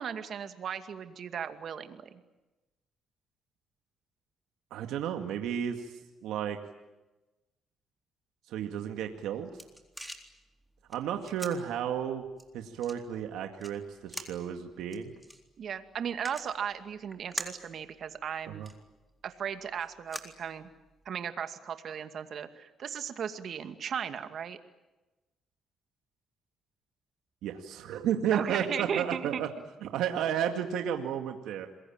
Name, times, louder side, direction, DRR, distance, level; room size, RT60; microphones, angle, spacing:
voice 1, 0.0-2.2 15.6-18.6 19.2-20.7 21.1-24.6 28.3-29.4, right 8 dB, 60° right, 8 dB, 2.3 m, -36 dB
voice 2, 4.7-6.6 8.5-9.5 10.9-12.3 12.5-15.1 18.5-18.7 27.4-29.5 29.8-31.7, right 9 dB, 90° right, 5 dB, 2.1 m, -32 dB
sound 1, 9.0-21.1, right 1 dB, ahead, 3.8 m, -47 dB
28.0 x 22.0 x 8.9 m, 1.1 s
cardioid pair, 90°, 0 cm